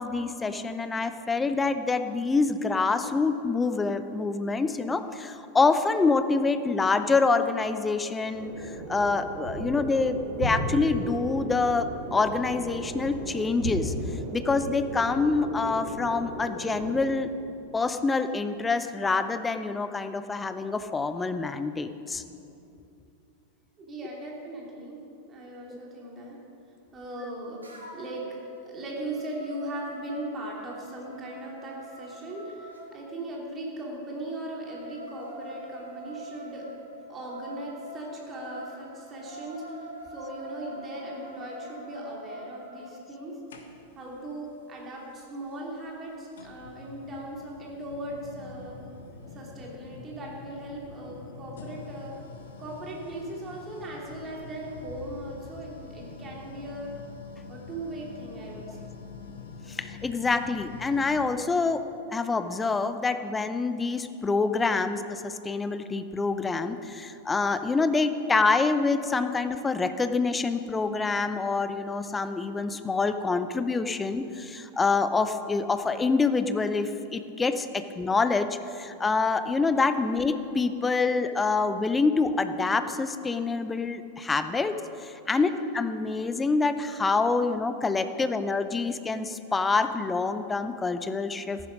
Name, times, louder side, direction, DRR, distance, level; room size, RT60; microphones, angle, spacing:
voice 1, 0.0-13.9 14.3-17.3 17.7-22.2 25.7-25.8 59.7-61.8 62.1-78.5 78.7-84.7 85.0-91.6, left 4 dB, 15° left, 10 dB, 0.7 m, -26 dB
sound 1, 8.3-17.0, right 2 dB, 55° right, 2.6 m, -35 dB
voice 2, 23.8-25.0 25.3-26.4 26.9-27.6 27.9-36.7 37.1-43.4 43.9-48.8 49.3-52.2 52.6-57.0 57.5-58.9 85.3-85.4, right 1 dB, 25° right, -3 dB, 2.9 m, -38 dB
sound 2, 27.6-28.2 28.6-32.8 34.3-42.9, right 1 dB, 80° right, 2.9 m, -44 dB
sound 3, 43.5-44.1 45.5-45.6 46.3-61.4, left 4 dB, 60° left, 1.3 m, -45 dB
14.0 x 11.0 x 5.2 m, 2.7 s
figure-of-eight pair, 90°, 0 cm